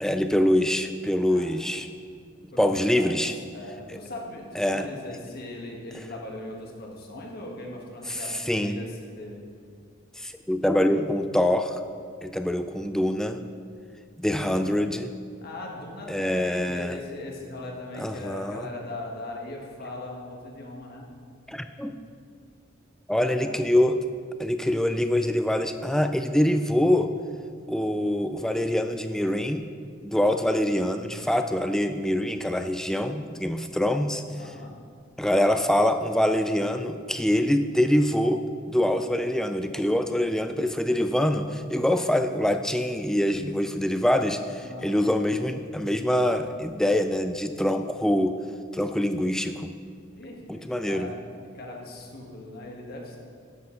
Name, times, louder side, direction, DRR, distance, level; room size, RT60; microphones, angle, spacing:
voice 1, 0.0-1.9 2.6-3.3 4.6-4.9 8.1-8.8 10.2-11.8 12.2-13.4 14.2-15.1 16.1-17.0 18.0-18.7 21.5-21.9 23.1-24.0 24.4-27.1 27.7-29.7 30.0-34.2 35.2-48.4 48.7-49.7 50.5-51.1, left 1 dB, 5° left, 8 dB, 0.3 m, -24 dB
voice 2, 2.5-3.1 3.5-9.4 15.4-21.1 23.3-23.7 34.4-34.8 44.6-45.1 50.1-51.1 51.5-53.2, left 2 dB, 50° left, -1 dB, 1.6 m, -39 dB
11.0 x 7.8 x 3.9 m, 2.1 s
head